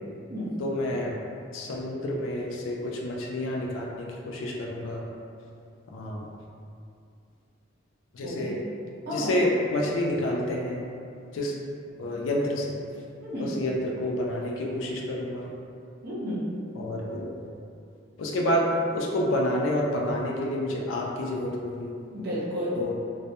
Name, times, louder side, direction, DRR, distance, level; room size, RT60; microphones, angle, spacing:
voice 1, 0.6-1.1 1.5-5.0 5.9-6.3 8.1-8.6 9.1-10.9 11.3-11.6 12.0-12.8 13.4-15.5 16.7-17.3 18.2-21.9 22.7-22.9, left 1 dB, 80° left, -1 dB, 0.4 m, -28 dB
voice 2, 8.2-8.5 9.0-9.3 13.2-13.5 16.0-16.5 22.1-22.8, equal, 55° right, -8 dB, 0.7 m, -32 dB
2.1 x 2.1 x 2.8 m, 2.5 s
head